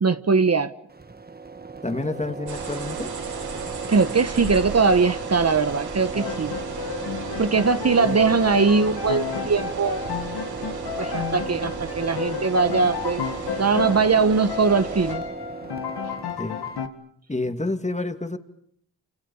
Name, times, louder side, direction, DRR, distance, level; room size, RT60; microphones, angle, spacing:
voice 1, 0.0-0.7 3.9-6.6 7.4-10.0 11.0-13.2 13.6-15.2, right 4 dB, 40° right, 1.2 m, -21 dB
sound 1, 0.9-16.9, right 4 dB, 25° right, 1.8 m, -36 dB
voice 2, 1.8-3.1 7.9-8.2 16.4-16.6 17.3-18.4, left 2 dB, 20° left, 2.7 m, -29 dB
sound 2, 2.5-15.2, right 4 dB, 75° right, 7.9 m, -37 dB
Piano, 6.1-14.2 14.5-16.9, left 7 dB, 85° left, 2.4 m, -32 dB
28.5 x 27.0 x 7.3 m
cardioid pair, 55°, 38 cm